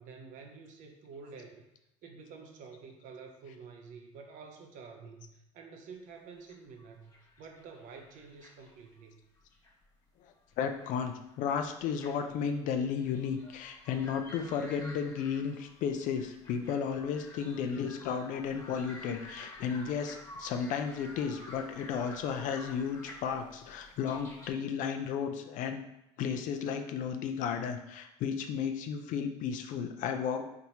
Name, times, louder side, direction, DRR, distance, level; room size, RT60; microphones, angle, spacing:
voice 1, 0.0-1.7 2.0-7.1 7.4-9.2, right 5 dB, 60° right, 3 dB, 0.8 m, -49 dB
sound 1, 6.5-8.9 9.4-9.8 10.4-11.0 11.3-24.5, left 1 dB, 25° left, 1.4 m, -51 dB
voice 2, 10.6-25.8 26.2-30.4, left 7 dB, 60° left, 6 dB, 0.5 m, -33 dB
4.1 x 3.5 x 2.9 m, 0.89 s
supercardioid pair, 90°, 15 cm